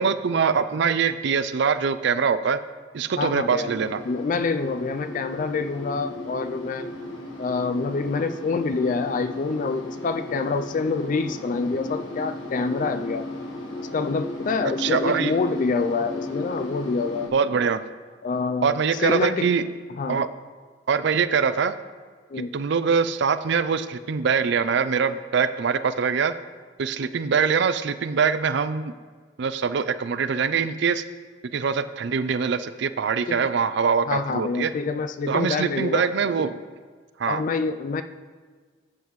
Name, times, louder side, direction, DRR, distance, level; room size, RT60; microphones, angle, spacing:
voice 1, 0.0-2.6 2.9-4.0 14.8-15.3 17.3-17.8 18.6-19.7 20.1-20.3 20.9-21.7 22.5-26.3 26.8-28.9 29.4-31.0 31.5-34.7 35.3-36.6 37.2-37.4, right 6 dB, 60° right, 13 dB, 0.4 m, -23 dB
voice 2, 3.2-3.7 4.1-6.9 7.4-13.3 13.9-17.3 18.2-19.5 20.0-20.2 22.3-22.5 33.3-33.4 34.0-36.1 37.3-38.0, left 4 dB, 40° left, 10 dB, 0.3 m, -26 dB
sound 1, 3.4-17.3, left 1 dB, 75° left, 1.7 m, -35 dB
12.0 x 8.4 x 3.1 m, 1.5 s
head